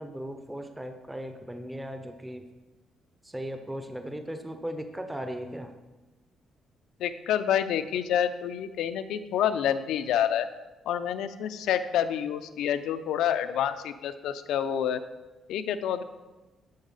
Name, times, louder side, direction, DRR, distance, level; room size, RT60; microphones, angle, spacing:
voice 1, 0.0-2.5 3.2-5.7, equal, 5° right, 6 dB, 0.5 m, -37 dB
voice 2, 7.0-10.5 10.9-15.0 15.5-16.0, left 9 dB, 85° left, 10 dB, 0.5 m, -28 dB
10.5 x 3.9 x 5.4 m, 1.1 s
cardioid pair, 150°, 0 cm